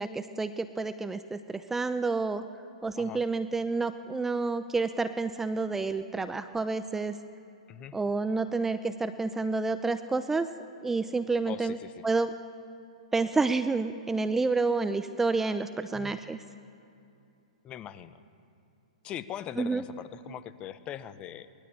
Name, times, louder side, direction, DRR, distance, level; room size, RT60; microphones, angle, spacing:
voice 1, 0.0-2.4 2.8-7.2 7.9-10.5 10.8-11.8 12.0-12.3 13.1-16.4 19.6-19.8, right 3 dB, 10° right, 11 dB, 0.7 m, -29 dB
voice 2, 11.4-12.0 15.9-16.2 17.6-18.2 19.0-21.5, left 10 dB, 25° left, 14 dB, 1.0 m, -41 dB
22.5 x 19.0 x 8.6 m, 2.6 s
figure-of-eight pair, 115°, 4 cm